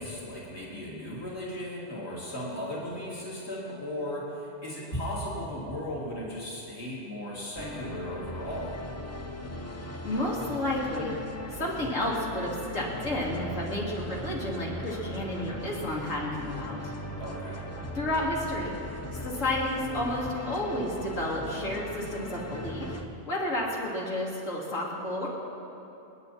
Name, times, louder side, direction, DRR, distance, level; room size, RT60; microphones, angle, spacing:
voice 1, 0.0-8.8 17.2-17.6, left 1 dB, 55° left, -7 dB, 3.8 m, -36 dB
sound 1, 7.6-23.1, left 1 dB, 15° left, 0.9 m, -38 dB
voice 2, 10.0-11.1 11.5-16.8 17.9-18.7 19.1-22.9 23.2-25.3, left 1 dB, 80° left, -4 dB, 3.4 m, -31 dB
29.0 x 10.5 x 4.3 m, 3.0 s
omnidirectional pair, 1.3 m